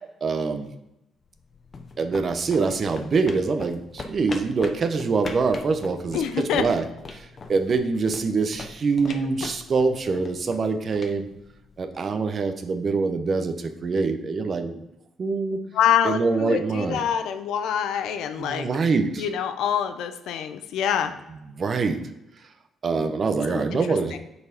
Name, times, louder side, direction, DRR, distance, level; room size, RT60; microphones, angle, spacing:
voice 1, 0.2-0.7 2.0-6.2 6.5-6.9 7.1-11.3 11.8-14.8 15.2-15.6 16.0-17.0 18.4-19.3 21.5-22.0 22.8-24.1, right 4 dB, 45° right, 9 dB, 0.8 m, -24 dB
sound 1, 1.3-12.1, left 3 dB, 35° left, 0.9 m, -42 dB
voice 2, 6.1-6.6 15.7-18.7 19.2-21.1 23.5-23.8 24.1-24.2, left 9 dB, 85° left, 9 dB, 0.6 m, -25 dB
6.9 x 4.3 x 5.2 m, 0.91 s
cardioid pair, 90°, 0 cm